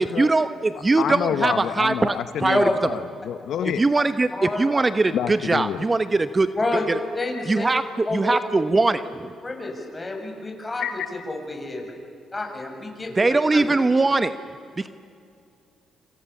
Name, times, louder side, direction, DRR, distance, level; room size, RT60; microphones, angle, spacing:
voice 1, 0.0-2.7 3.8-7.0 7.5-9.3 13.2-14.3 14.8-14.9, right 3 dB, 25° right, 11 dB, 1.0 m, -21 dB
voice 2, 1.0-3.8 5.1-5.8 10.8-11.1, left 9 dB, 75° left, 11 dB, 0.8 m, -28 dB
voice 3, 7.1-7.7 8.1-8.2 9.4-11.0 11.3-11.8 12.3-13.2 13.5-13.7, left 2 dB, 25° left, 2 dB, 7.4 m, -28 dB
27.5 x 27.0 x 7.2 m, 2.4 s
supercardioid pair, 65°, 0 cm